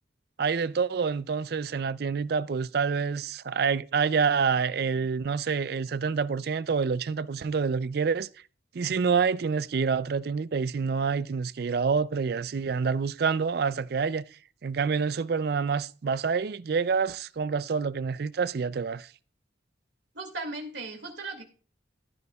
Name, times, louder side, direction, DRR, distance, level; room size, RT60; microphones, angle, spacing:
voice 1, 0.4-8.3 8.7-14.3 14.6-19.1, right 5 dB, 55° right, 0.4 m, -27 dB
voice 2, 20.1-21.4, right 2 dB, 70° right, 2.4 m, -37 dB
14.5 x 9.7 x 2.3 m
head